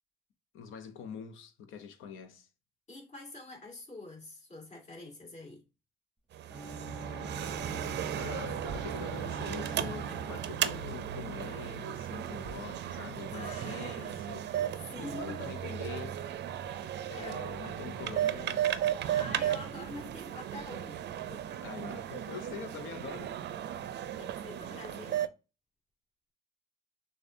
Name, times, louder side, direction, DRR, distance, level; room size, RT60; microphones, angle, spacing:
voice 1, 0.5-2.5 8.2-14.5 15.0-16.2 17.1-18.8 21.6-23.4, left 7 dB, 85° left, 0.7 m, -44 dB
voice 2, 2.9-5.6 12.9-13.0 13.3-14.4 14.7-15.5 17.1-17.4 18.9-21.0 21.3-21.6 23.9-25.2, left 2 dB, 35° left, 2.0 m, -46 dB
sound 1, 6.3-25.3, right 10 dB, 60° right, 0.4 m, -35 dB
sound 2, 6.5-11.5, right 2 dB, 5° right, 1.0 m, -43 dB
6.4 x 2.3 x 2.6 m
cardioid pair, 90°, 20 cm